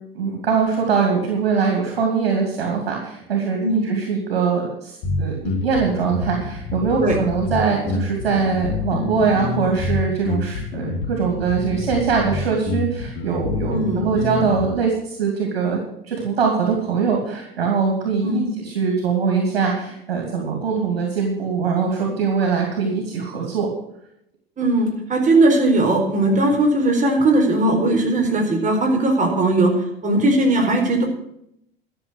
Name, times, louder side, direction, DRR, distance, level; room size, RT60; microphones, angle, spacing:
voice 1, 0.1-23.7, right 5 dB, 80° right, 1 dB, 2.8 m, -22 dB
sound 1, 5.0-14.6, left 3 dB, 60° left, 3.0 m, -27 dB
voice 2, 13.7-14.0 18.2-18.5 24.6-29.7 30.0-31.0, right 2 dB, 25° right, 1 dB, 4.3 m, -18 dB
12.5 x 7.3 x 8.3 m, 0.76 s
hypercardioid pair, 85°, 30 cm